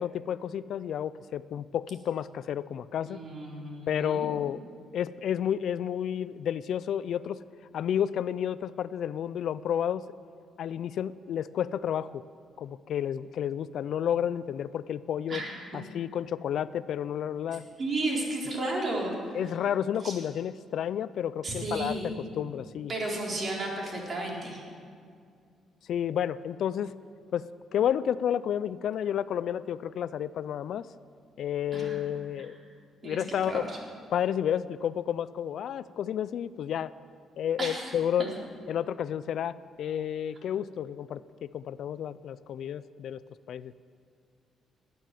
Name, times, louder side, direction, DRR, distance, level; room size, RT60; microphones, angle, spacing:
voice 1, 0.0-3.2 3.9-4.6 4.9-7.4 7.7-10.0 10.6-12.2 12.6-15.4 15.7-17.6 19.3-22.0 22.4-22.9 25.9-26.9 27.3-27.5 27.7-30.9 31.4-32.6 33.0-33.7 34.1-36.9 37.4-38.3 38.7-43.2 43.5-43.7, left 9 dB, 70° left, 17 dB, 0.4 m, -31 dB
voice 2, 3.1-4.3 15.3-15.8 17.8-19.4 20.0-20.2 21.4-22.2 22.9-24.6 31.7-32.0 33.0-33.6 37.6-37.9 38.2-38.3, right 2 dB, 40° right, -2 dB, 4.1 m, -33 dB
18.5 x 9.3 x 7.6 m, 2.3 s
cardioid pair, 90°, 0 cm